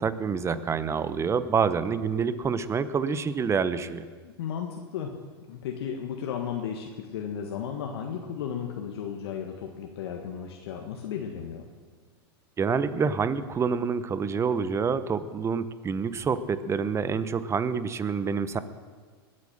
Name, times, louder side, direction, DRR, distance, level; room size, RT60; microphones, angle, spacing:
voice 1, 0.0-4.0 12.6-18.6, right 6 dB, 20° right, 14 dB, 0.9 m, -27 dB
voice 2, 4.4-5.1 5.5-11.7, left 8 dB, 70° left, 2 dB, 1.6 m, -34 dB
20.0 x 8.6 x 6.6 m, 1.5 s
hypercardioid pair, 110°, 13 cm